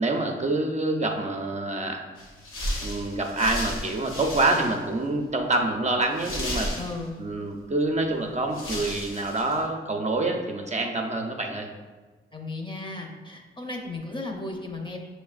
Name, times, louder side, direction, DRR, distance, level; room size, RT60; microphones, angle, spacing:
voice 1, 0.0-2.0 2.8-6.7 7.2-11.7, right 2 dB, 35° right, 2 dB, 0.5 m, -26 dB
sound 1, 2.2-4.9 5.3-5.4 6.1-7.3 8.1-8.2 8.5-9.6, left 1 dB, 85° left, 0.9 m, -34 dB
voice 2, 6.8-7.1 12.3-15.0, left 2 dB, 25° left, 2 dB, 0.8 m, -35 dB
5.9 x 3.2 x 2.4 m, 1.3 s
cardioid pair, 65°, 21 cm